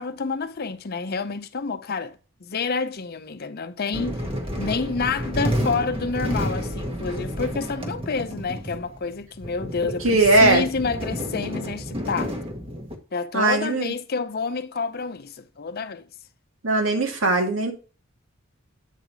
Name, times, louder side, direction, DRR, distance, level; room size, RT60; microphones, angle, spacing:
voice 1, 0.0-4.2 4.6-12.3 13.1-16.0, left 4 dB, 50° left, 0.6 m, -28 dB
sound 1, 3.9-13.0, equal, 30° right, 1.2 m, -30 dB
voice 2, 9.8-10.6 13.3-13.9 16.6-17.7, right 2 dB, 85° right, 1.8 m, -19 dB
8.3 x 3.9 x 4.5 m
head